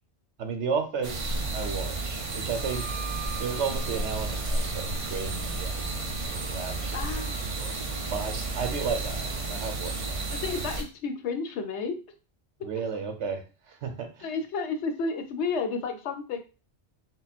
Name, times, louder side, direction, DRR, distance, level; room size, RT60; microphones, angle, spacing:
voice 1, 0.4-2.9 3.2-5.9 6.2-7.2 7.6-7.7 8.1-10.2 12.6-14.3, right 5 dB, 75° right, 6 dB, 1.1 m, -33 dB
sound 1, 1.0-10.8, right 3 dB, 35° right, 0.6 m, -32 dB
Wind instrument woodwind instrument, 2.5-7.5, right 7 dB, 20° right, 1.4 m, -45 dB
voice 2, 6.9-7.4 10.3-12.0 14.2-16.4, left 4 dB, 75° left, 7 dB, 0.9 m, -31 dB
3.7 x 2.2 x 4.1 m, 0.33 s
omnidirectional pair, 1.2 m